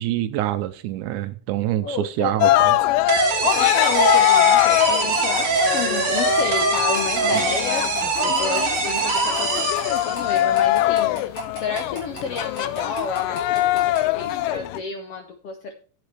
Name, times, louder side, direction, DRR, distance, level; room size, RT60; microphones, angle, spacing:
voice 1, 0.0-2.8 7.3-7.4, right 13 dB, 80° right, 11 dB, 1.9 m, -26 dB
voice 2, 1.8-7.9 8.2-9.7 10.0-15.7, left 5 dB, 75° left, 6 dB, 1.4 m, -31 dB
Cheering, 2.4-14.8, left 15 dB, 90° left, 2.2 m, -22 dB
sound 1, 3.1-10.4, right 4 dB, 40° right, 2.0 m, -23 dB
sound 2, 3.4-14.1, left 1 dB, 35° left, 5.0 m, -38 dB
11.5 x 8.4 x 3.3 m, 0.39 s
omnidirectional pair, 3.8 m